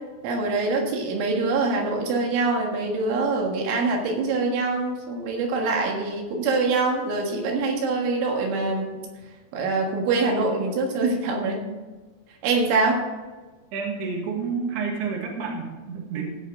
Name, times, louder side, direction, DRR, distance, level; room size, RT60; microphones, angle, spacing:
voice 1, 0.2-8.9 9.5-11.6 12.4-13.1, right 3 dB, 90° right, 1 dB, 4.1 m, -24 dB
voice 2, 13.7-16.3, right 5 dB, 65° right, 0 dB, 3.6 m, -29 dB
16.5 x 5.7 x 6.3 m, 1.3 s
omnidirectional pair, 5.3 m